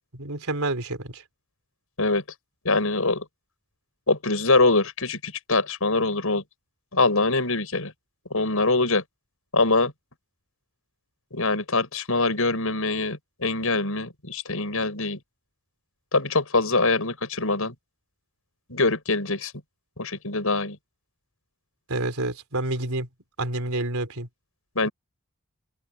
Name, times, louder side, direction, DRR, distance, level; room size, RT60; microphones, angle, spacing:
voice 1, 0.1-1.2 21.9-23.1 23.4-24.3, right 2 dB, 80° right, 3.5 m, -28 dB
voice 2, 2.6-3.2 4.1-6.4 6.9-7.9 8.3-9.0 9.5-9.9 11.3-15.2 16.1-17.7 18.7-19.5 20.0-20.8 24.7-24.9, left 3 dB, 75° left, 6.3 m, -23 dB
open air
head